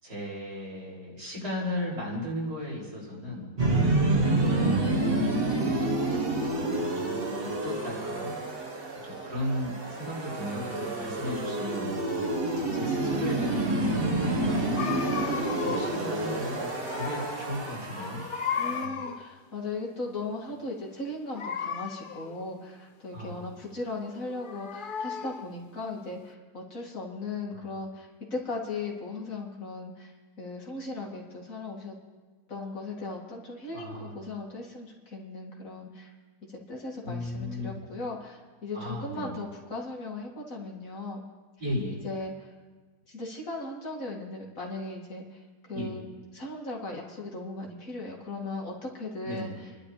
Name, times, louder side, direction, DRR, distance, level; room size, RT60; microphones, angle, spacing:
voice 1, 0.0-3.5 3.8-8.4 9.0-11.9 12.7-14.8 15.6-18.2 18.6-19.0 23.1-23.5 27.5-27.7 33.7-34.1 37.0-37.8 38.7-39.3 41.6-42.0 45.7-45.9 49.2-49.5, left 1 dB, 90° right, -6 dB, 6.5 m, -36 dB
sound 1, 3.6-18.8, right 2 dB, 35° right, 1.5 m, -28 dB
sound 2, 14.8-16.1 16.4-17.5 17.8-19.4 21.3-22.4 24.1-25.6, left 7 dB, 80° left, 0.4 m, -35 dB
voice 2, 18.6-30.1 30.4-32.0 32.5-36.1 36.4-41.2 41.9-42.5 43.1-46.0 46.3-49.7, left 2 dB, 55° left, -2 dB, 2.8 m, -37 dB
29.5 x 12.0 x 3.3 m, 1.3 s
omnidirectional pair, 1.7 m